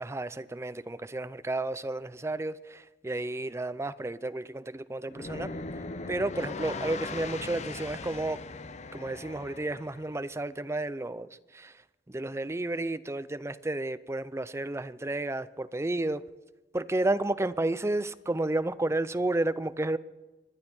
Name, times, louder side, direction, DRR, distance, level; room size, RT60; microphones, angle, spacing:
voice 1, 0.0-5.5 6.1-8.4 8.9-11.8 12.1-16.2 16.7-20.0, right 2 dB, 15° right, 0.5 m, -32 dB
sound 1, 5.1-10.2, left 3 dB, 40° left, 0.7 m, -39 dB
26.5 x 11.0 x 4.4 m
head